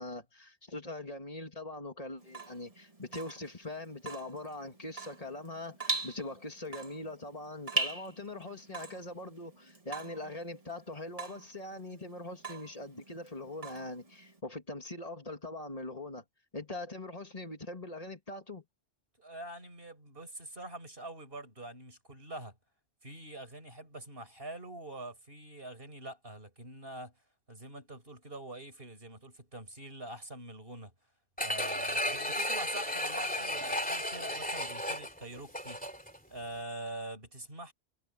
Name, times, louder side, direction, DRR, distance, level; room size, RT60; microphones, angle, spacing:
voice 1, 0.0-16.2 16.5-18.6, left 2 dB, 35° left, 2.8 m, -42 dB
Water tap faucet / Drip, 2.2-14.4, right 2 dB, 35° right, 2.2 m, -41 dB
voice 2, 19.2-22.6 23.0-27.1 27.5-30.9 31.4-35.8 36.3-37.7, right 1 dB, 60° right, 5.8 m, -45 dB
sound 1, 31.4-36.2 36.6-36.7, left 1 dB, 10° left, 3.3 m, -34 dB
omnidirectional pair, 1.1 m